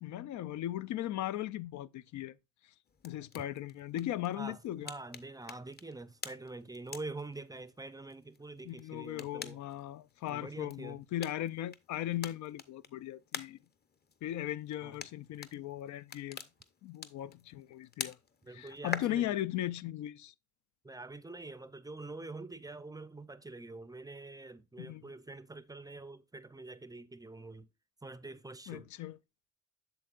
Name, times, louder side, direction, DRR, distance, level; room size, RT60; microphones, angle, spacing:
voice 1, 0.0-2.4 3.0-4.9 8.6-13.6 14.2-16.4 16.8-18.2 18.5-20.3 24.8-25.1 28.7-29.2, left 13 dB, 70° left, 0.4 m, -38 dB
sound 1, 2.8-19.0, left 5 dB, 35° left, 0.7 m, -48 dB
voice 2, 4.4-9.6 10.3-11.0 14.8-15.0 18.4-19.4 20.8-27.7 28.0-28.9, right 2 dB, 10° right, 0.5 m, -46 dB
8.0 x 6.7 x 2.4 m
cardioid pair, 90°, 30 cm